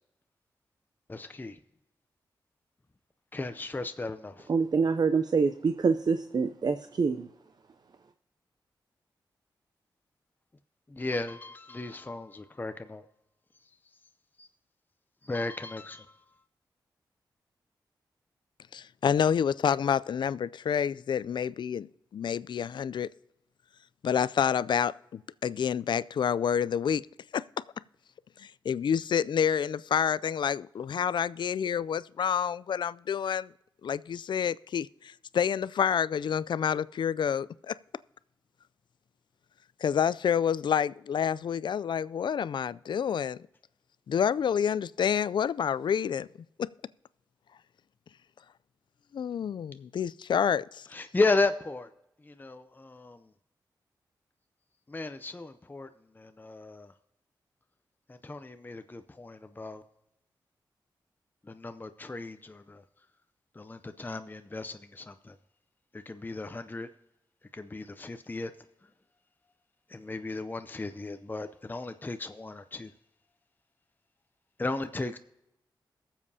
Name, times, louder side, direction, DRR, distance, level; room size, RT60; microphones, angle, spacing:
voice 1, 1.1-1.6 3.3-4.5 10.9-13.0 14.4-14.5 15.2-16.1 50.9-51.9 52.2-53.3 54.9-55.9 56.1-56.9 58.1-59.8 61.5-62.8 63.6-65.3 65.9-66.9 67.5-68.5 69.9-72.9 74.6-75.2, left 3 dB, 25° left, 0.6 m, -34 dB
voice 2, 4.5-7.3, right 5 dB, 55° right, 0.5 m, -26 dB
voice 3, 18.7-21.9 22.1-23.1 24.0-27.1 27.3-27.4 28.4-33.5 33.8-37.7 39.8-43.4 44.1-46.3 46.6-46.7 49.1-50.9, left 8 dB, 65° left, 0.3 m, -28 dB
22.0 x 7.4 x 2.8 m
cardioid pair, 50°, 8 cm